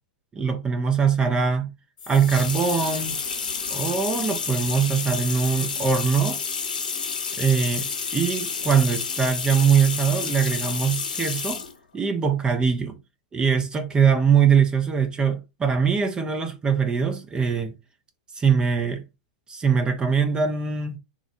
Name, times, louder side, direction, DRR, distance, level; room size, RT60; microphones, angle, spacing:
voice 1, 0.3-1.7 2.1-3.2 3.7-6.4 7.4-11.6 11.9-13.0 13.3-17.7 18.4-19.0 19.5-21.0, right 6 dB, 20° right, 0.6 m, -22 dB
sound 1, 2.0-11.8, left 5 dB, 90° left, 0.9 m, -30 dB
3.6 x 2.1 x 2.7 m
hypercardioid pair, 115°, 5 cm